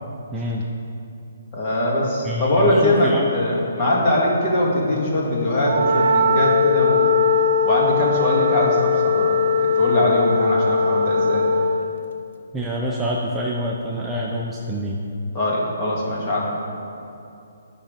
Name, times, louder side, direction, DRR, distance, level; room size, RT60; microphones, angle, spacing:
voice 1, 0.3-0.6 2.2-3.3 12.5-15.0, equal, 10° right, -4 dB, 0.5 m, -26 dB
voice 2, 1.5-7.1 7.6-11.5 15.3-16.5, left 1 dB, 25° left, -4 dB, 1.9 m, -21 dB
Wind instrument woodwind instrument, 5.6-11.9, left 4 dB, 55° right, 0.7 m, -19 dB
10.5 x 5.7 x 5.1 m, 2.7 s
hypercardioid pair, 165°, 0 cm